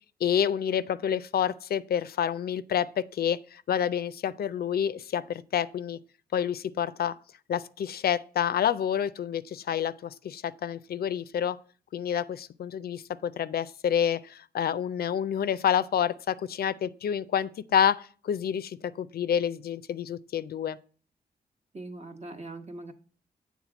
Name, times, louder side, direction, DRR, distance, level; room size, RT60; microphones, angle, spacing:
voice 1, 0.2-6.0 6.3-7.1 7.5-11.6 11.9-20.8, left 9 dB, 65° left, 0.4 m, -28 dB
voice 2, 21.7-22.9, right 2 dB, 40° right, 1.1 m, -41 dB
7.3 x 3.6 x 6.0 m
cardioid pair, 70°, 17 cm